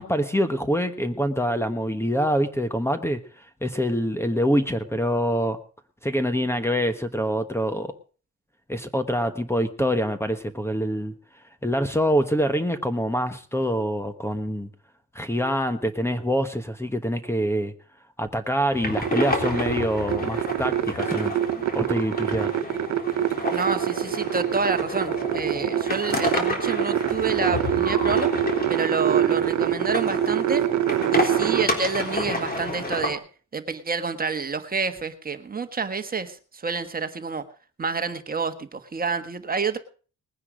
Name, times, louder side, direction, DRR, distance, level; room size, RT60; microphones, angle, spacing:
voice 1, 0.0-3.2 3.6-5.6 6.0-7.9 8.7-11.1 11.6-14.7 15.1-17.7 18.2-21.3 21.7-22.5, equal, 10° left, 1.3 m, -25 dB
sound 1, 18.7-33.1, left 2 dB, 30° left, 3.7 m, -30 dB
sound 2, 19.0-31.6, right 12 dB, 70° right, 0.8 m, -25 dB
voice 2, 23.5-30.7 31.1-33.2 33.5-37.4 37.8-39.8, right 4 dB, 30° right, 1.5 m, -28 dB
20.0 x 9.6 x 5.1 m
cardioid pair, 90°, 30 cm